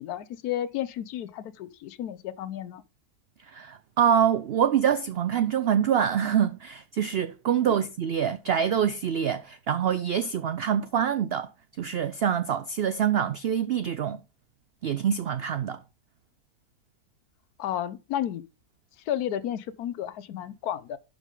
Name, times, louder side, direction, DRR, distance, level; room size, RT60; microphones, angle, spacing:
voice 1, 0.0-2.8 7.7-7.8 17.6-18.4 19.1-21.0, left 11 dB, 80° left, 1.2 m, -32 dB
voice 2, 3.5-11.5 11.8-14.2 14.8-15.8, right 8 dB, 85° right, 0.5 m, -25 dB
11.5 x 5.2 x 3.7 m
omnidirectional pair, 1.6 m